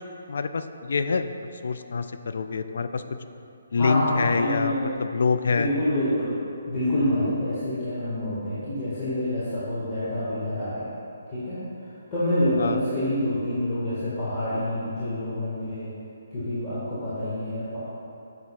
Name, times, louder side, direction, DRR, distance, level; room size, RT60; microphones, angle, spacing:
voice 1, 0.3-1.3 1.6-3.0 3.7-5.7 12.6-12.8, left 4 dB, 55° left, 9 dB, 0.3 m, -26 dB
voice 2, 3.8-4.9 5.4-6.3 6.7-10.9 11.3-11.6 12.1-15.9 16.3-17.8, left 1 dB, 20° left, -13 dB, 1.6 m, -27 dB
9.5 x 6.4 x 2.3 m, 2.7 s
figure-of-eight pair, 140°, 0 cm